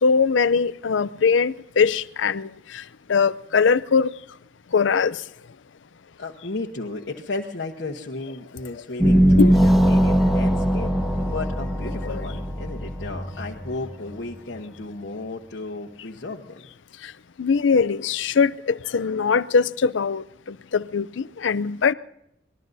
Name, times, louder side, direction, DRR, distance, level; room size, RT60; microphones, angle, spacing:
voice 1, 0.0-2.8 3.1-4.1 4.7-5.2 9.4-9.5 12.1-12.2 17.0-17.1 17.4-21.9, left 5 dB, 80° left, 0.5 m, -21 dB
voice 2, 6.2-16.7, left 3 dB, 60° left, 1.1 m, -34 dB
sound 1, 9.0-14.2, equal, ahead, 1.3 m, -20 dB
25.0 x 20.0 x 2.7 m
head